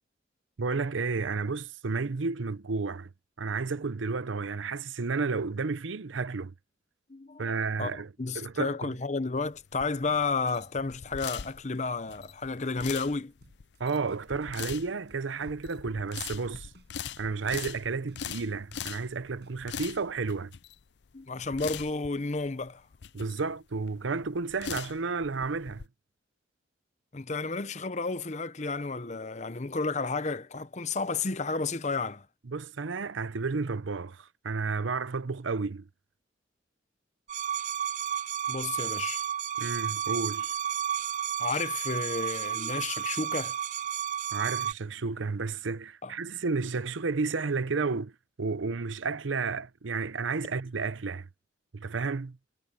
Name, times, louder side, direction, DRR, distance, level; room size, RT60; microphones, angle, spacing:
voice 1, 0.6-3.1 3.4-6.5 7.4-8.1 8.3-9.0 13.8-16.7 17.2-20.5 23.1-25.9 32.5-35.9 39.6-40.6 44.3-48.1 48.4-51.3 51.7-52.4, right 4 dB, 90° right, 0.7 m, -32 dB
voice 2, 7.1-7.4 7.8-7.9 8.2-13.3 21.1-22.8 27.1-32.3 38.5-39.3 41.4-43.6 46.0-46.1, left 4 dB, 40° left, 0.8 m, -32 dB
sound 1, 9.4-25.9, left 8 dB, 65° left, 0.5 m, -42 dB
sound 2, 10.0-19.8, right 1 dB, 65° right, 7.0 m, -59 dB
sound 3, 37.3-44.7, right 9 dB, 40° right, 0.5 m, -32 dB
head